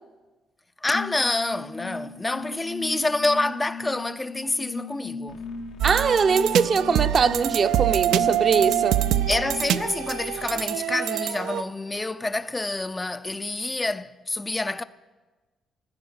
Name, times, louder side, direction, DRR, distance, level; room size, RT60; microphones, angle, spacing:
voice 1, 0.8-5.4 9.3-14.8, left 2 dB, 20° left, 0.5 m, -27 dB
sound 1, 0.9-9.8, left 4 dB, 65° left, 2.5 m, -37 dB
sound 2, 5.3-10.6, left 3 dB, 90° left, 1.6 m, -47 dB
voice 2, 5.8-9.0, right 5 dB, 45° right, 0.7 m, -22 dB
sound 3, 5.8-11.6, right 12 dB, 85° right, 0.5 m, -25 dB
15.5 x 12.5 x 6.3 m
cardioid pair, 90°, 0 cm